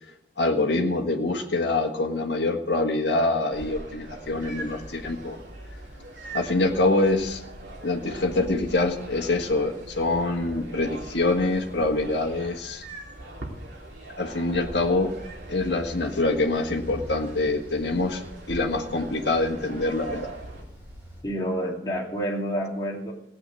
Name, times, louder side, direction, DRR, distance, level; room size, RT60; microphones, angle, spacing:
voice 1, 0.4-5.4 6.3-7.4 7.8-12.8 14.2-15.1 15.5-18.2 18.5-20.3, left 2 dB, 75° left, 1 dB, 1.7 m, -25 dB
sound 1, 3.5-20.6, right 2 dB, 85° right, 3.5 m, -42 dB
sound 2, 4.2-21.2, equal, 10° right, 5.1 m, -46 dB
voice 2, 21.2-23.1, equal, 20° left, -3 dB, 2.8 m, -28 dB
16.5 x 8.6 x 7.7 m, 0.80 s
head